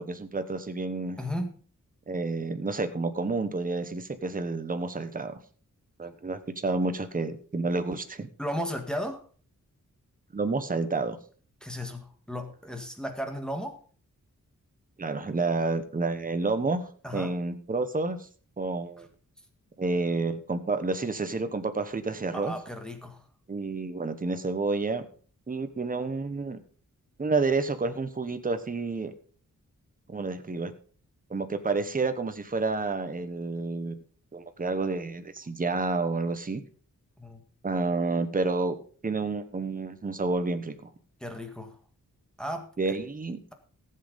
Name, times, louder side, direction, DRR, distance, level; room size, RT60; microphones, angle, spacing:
voice 1, 0.0-1.2 2.1-5.3 6.0-8.3 10.3-11.2 15.0-16.8 17.1-18.2 18.6-19.1 19.8-22.5 23.5-25.1 25.5-26.6 27.2-29.1 30.1-30.7 31.3-34.0 34.3-36.6 37.6-38.8 39.0-40.9 42.8-43.4, right 3 dB, 25° right, 9 dB, 1.1 m, -29 dB
voice 2, 1.2-1.5 6.0-6.1 8.4-9.2 11.6-13.8 17.0-17.3 22.3-23.2 37.2-37.4 41.2-41.8 42.4-42.7, equal, ahead, 4 dB, 1.6 m, -35 dB
14.5 x 7.7 x 5.2 m, 0.42 s
wide cardioid pair, 145°, 32 cm